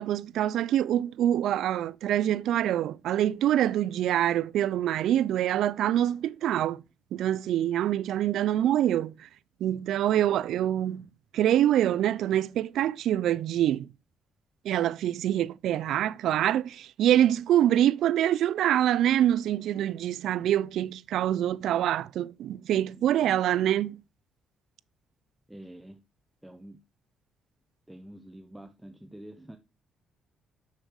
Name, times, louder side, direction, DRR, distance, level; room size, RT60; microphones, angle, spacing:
voice 1, 0.0-6.8 7.1-9.1 9.6-11.0 11.3-13.9 14.7-24.0, right 11 dB, 80° right, 0.4 m, -25 dB
voice 2, 22.7-23.3 25.5-26.0 26.4-26.8 27.9-29.6, right 1 dB, 5° right, 0.8 m, -47 dB
6.6 x 6.5 x 4.7 m
cardioid pair, 90°, 0 cm